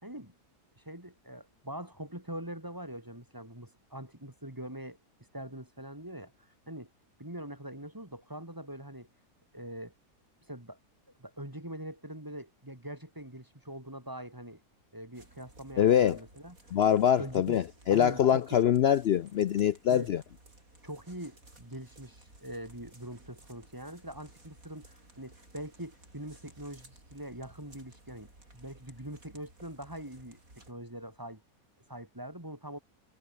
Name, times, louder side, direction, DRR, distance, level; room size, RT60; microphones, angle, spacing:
voice 1, 0.0-0.3 0.8-5.0 5.3-6.3 6.7-6.9 7.2-9.1 9.5-9.9 10.5-10.8 11.2-14.6 14.9-16.6 17.2-17.6 17.9-18.4 19.9-20.1 20.8-30.4 30.7-31.4 31.9-32.8, right 1 dB, 10° right, 3.2 m, -43 dB
sound 1, 15.1-30.7, right 2 dB, 60° right, 7.4 m, -57 dB
voice 2, 15.8-16.2 16.7-20.2, left 9 dB, 75° left, 0.5 m, -24 dB
omnidirectional pair, 1.7 m